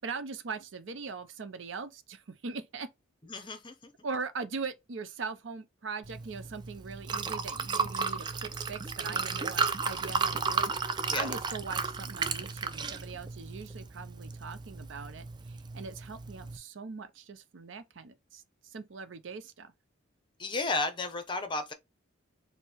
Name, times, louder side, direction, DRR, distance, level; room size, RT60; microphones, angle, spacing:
voice 1, 0.0-2.9 4.0-19.7, right 4 dB, 75° right, 0.6 m, -41 dB
voice 2, 3.3-3.9 11.1-11.3 20.4-21.7, left 3 dB, 25° left, 0.7 m, -33 dB
Liquid, 6.0-16.6, right 5 dB, 20° right, 0.3 m, -34 dB
4.4 x 2.1 x 3.3 m
head